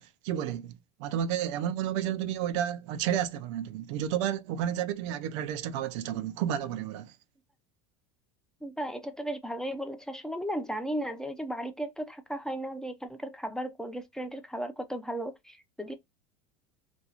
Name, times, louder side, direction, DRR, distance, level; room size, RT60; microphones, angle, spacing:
voice 1, 0.0-7.2, right 10 dB, 75° right, 0.4 m, -31 dB
voice 2, 8.6-15.9, right 1 dB, 5° left, 0.4 m, -35 dB
2.5 x 2.3 x 2.8 m
supercardioid pair, 115°, 16 cm